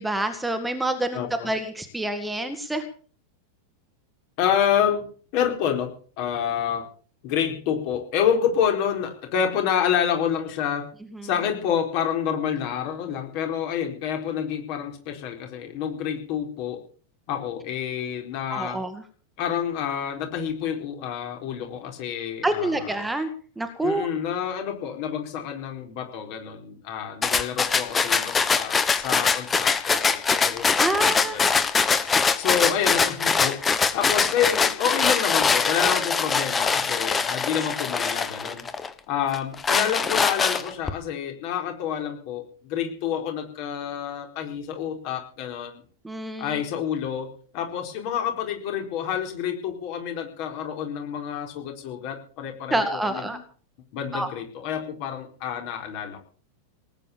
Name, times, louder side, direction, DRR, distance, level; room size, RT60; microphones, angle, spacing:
voice 1, 0.0-2.8 11.1-11.3 18.5-19.0 22.4-23.3 23.6-24.1 30.8-31.5 46.0-46.6 52.7-53.4 54.1-54.3, right 1 dB, 5° right, 8 dB, 1.9 m, -27 dB
voice 2, 1.1-1.5 4.4-6.9 7.2-10.9 11.2-16.8 17.3-18.8 19.4-22.8 23.8-28.8 29.0-31.6 32.4-33.6 33.9-38.6 39.1-45.8 46.4-53.4 53.9-56.2, left 8 dB, 45° left, 4 dB, 4.3 m, -28 dB
sound 1, 27.2-38.9 39.3-40.9, left 5 dB, 15° left, 1.4 m, -23 dB
19.0 x 9.1 x 7.0 m, 0.43 s
figure-of-eight pair, 90°, 0 cm